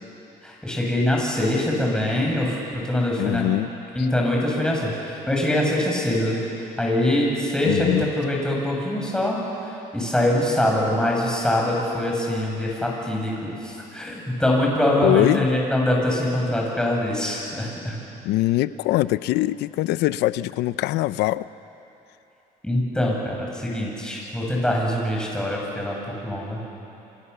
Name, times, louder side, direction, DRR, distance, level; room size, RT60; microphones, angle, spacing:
voice 1, 0.4-3.4 3.9-18.0 22.6-26.7, left 1 dB, 5° left, -2 dB, 7.6 m, -24 dB
voice 2, 3.2-3.7 7.6-8.1 15.0-15.5 18.2-21.5, left 16 dB, 85° left, 16 dB, 0.7 m, -22 dB
29.0 x 26.5 x 7.1 m, 2.9 s
cardioid pair, 110°, 17 cm